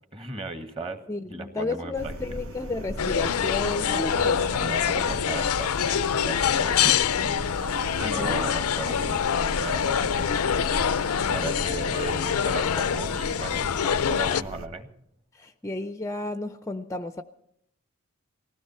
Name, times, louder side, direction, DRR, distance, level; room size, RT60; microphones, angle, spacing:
voice 1, 0.1-1.0 1.3-2.1 3.9-9.2 9.5-10.9 11.3-14.9, right 2 dB, 25° right, 1.5 m, -37 dB
voice 2, 1.1-4.4 8.0-8.4 15.3-17.2, left 2 dB, 15° left, 0.5 m, -32 dB
sound 1, 1.9-14.7, equal, 75° right, 1.1 m, -38 dB
sound 2, 3.0-14.4, left 8 dB, 90° left, 0.5 m, -25 dB
19.5 x 16.0 x 4.4 m
head